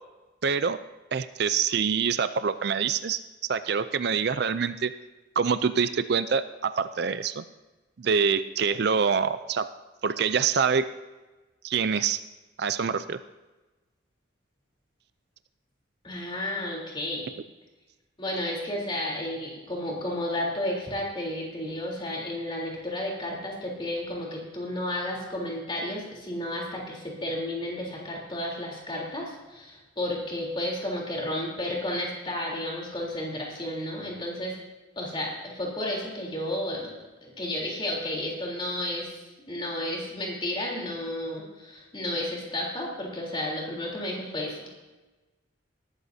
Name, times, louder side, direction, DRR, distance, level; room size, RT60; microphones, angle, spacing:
voice 1, 0.4-0.8 1.1-3.2 3.5-4.9 5.4-7.4 8.0-9.7 10.0-10.9 11.6-12.2 12.6-13.2, right 6 dB, 55° right, 12 dB, 0.4 m, -25 dB
voice 2, 16.0-17.3 18.2-34.5 34.9-36.9 37.2-39.2 39.5-44.8, left 1 dB, 25° left, -2 dB, 3.6 m, -32 dB
19.0 x 13.0 x 2.8 m, 1.2 s
head